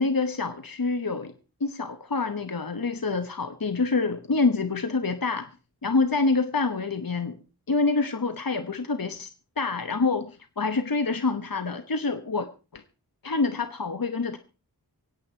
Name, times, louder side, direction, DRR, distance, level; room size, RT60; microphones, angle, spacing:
voice 1, 0.0-1.3 1.6-5.5 5.8-7.4 7.7-9.3 9.6-12.5 12.7-12.8 13.2-14.4, left 3 dB, 60° left, 9 dB, 1.0 m, -26 dB
25.0 x 8.6 x 4.4 m, 0.34 s
wide cardioid pair, 40°, 39 cm